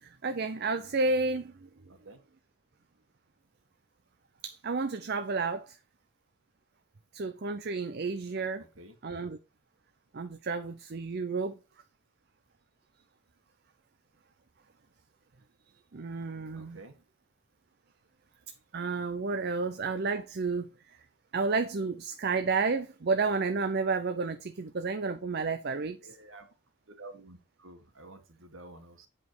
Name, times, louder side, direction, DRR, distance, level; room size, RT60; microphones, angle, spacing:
voice 1, 0.0-1.7 4.4-5.8 7.1-8.7 9.0-9.4 10.1-11.6 15.9-16.8 18.7-20.7 21.3-26.2, right 4 dB, 50° right, 0.5 m, -31 dB
voice 2, 8.6-9.0 16.5-17.0 26.0-26.5 26.9-29.1, right 2 dB, 65° right, 1.8 m, -50 dB
8.3 x 5.3 x 4.6 m
head